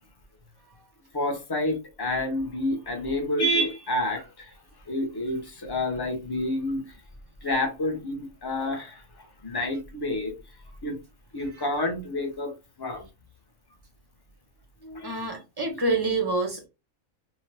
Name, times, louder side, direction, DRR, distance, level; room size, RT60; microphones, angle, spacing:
voice 1, 1.1-4.5 4.9-7.0 7.4-10.3 10.8-10.9 11.3-13.1 14.8-15.3, left 1 dB, 25° left, 0.5 m, -29 dB
voice 2, 15.0-16.7, right 2 dB, 25° right, 0.6 m, -27 dB
2.9 x 2.1 x 3.3 m
omnidirectional pair, 1.4 m